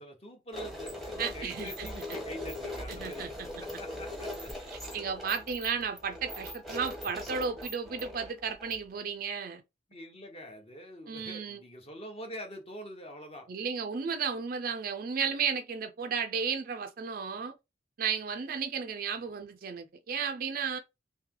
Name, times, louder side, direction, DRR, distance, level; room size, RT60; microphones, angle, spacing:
voice 1, 0.0-3.3 3.6-4.5 9.9-13.5, equal, 30° left, 0.9 m, -45 dB
sound 1, 0.5-9.0, left 1 dB, ahead, 0.8 m, -40 dB
voice 2, 1.2-1.9 2.9-3.5 4.9-9.6 11.1-11.6 13.5-17.5 18.0-20.8, right 6 dB, 45° right, 0.4 m, -34 dB
3.2 x 2.7 x 3.6 m
head